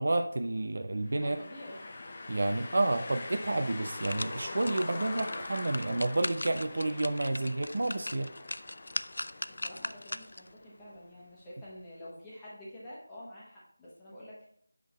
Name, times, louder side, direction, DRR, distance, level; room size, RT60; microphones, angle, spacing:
voice 1, 0.0-1.4 2.3-8.3, right 2 dB, 55° right, 6 dB, 0.6 m, -30 dB
sound 1, 1.1-10.9, left 2 dB, 30° left, 0.6 m, -43 dB
voice 2, 1.2-1.9 9.5-14.4, left 1 dB, 5° left, -9 dB, 1.3 m, -48 dB
sound 2, 4.0-10.5 11.0-11.1, left 1 dB, 75° left, 0.3 m, -40 dB
7.7 x 3.7 x 4.1 m, 0.63 s
figure-of-eight pair, 175°, 0 cm